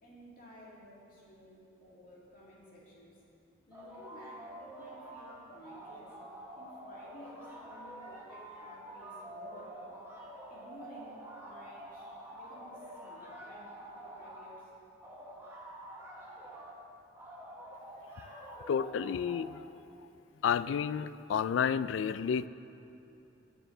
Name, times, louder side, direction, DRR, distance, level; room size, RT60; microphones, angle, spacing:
voice 1, 0.0-3.2 3.7-6.2 6.6-9.8 10.5-14.7, equal, 45° left, -5 dB, 2.4 m, -54 dB
sound 1, 3.7-5.4 5.6-14.5 15.0-16.8 17.2-19.5, right 1 dB, 15° right, 1.4 m, -48 dB
voice 2, 18.5-19.6 20.4-22.5, left 7 dB, 80° left, 15 dB, 0.3 m, -31 dB
17.0 x 6.7 x 3.9 m, 2.9 s
head